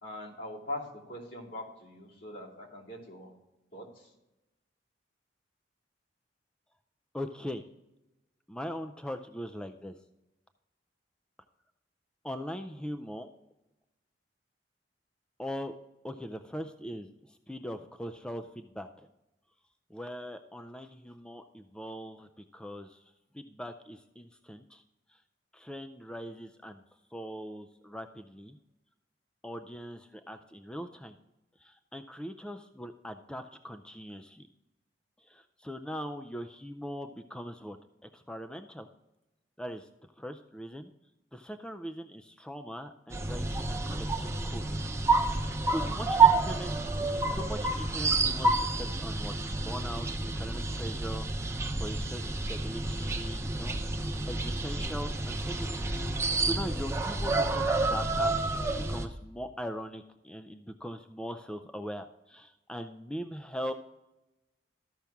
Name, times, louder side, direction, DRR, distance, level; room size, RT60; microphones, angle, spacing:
voice 1, 0.0-3.3 3.7-4.1, left 1 dB, 70° left, -4 dB, 2.9 m, -42 dB
voice 2, 7.1-7.6 8.5-9.9 12.2-13.3 15.4-15.7 16.0-19.1 19.9-23.0 23.3-24.8 25.1-25.2 25.5-26.8 27.1-28.6 29.4-31.2 31.6-34.5 35.2-37.8 38.1-38.9 39.6-39.9 40.2-40.9 41.3-44.8 45.4-46.7 47.0-50.1 50.4-54.0 54.3-58.4 58.9-63.7, equal, 5° left, 8 dB, 0.4 m, -41 dB
sound 1, 43.1-59.1, right 3 dB, 15° right, 0.7 m, -29 dB
13.5 x 5.8 x 3.5 m, 0.97 s
head